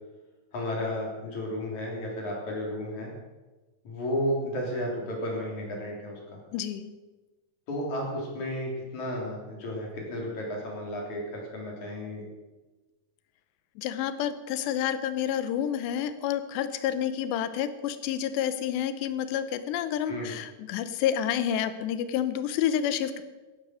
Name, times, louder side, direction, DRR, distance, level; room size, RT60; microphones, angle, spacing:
voice 1, 0.5-3.1 3.8-6.4 7.7-12.3 20.1-20.3, left 1 dB, 45° left, -2 dB, 4.6 m, -33 dB
voice 2, 6.5-6.9 13.8-23.2, left 9 dB, 85° left, 11 dB, 3.1 m, -29 dB
14.5 x 11.5 x 6.3 m, 1.2 s
omnidirectional pair, 4.9 m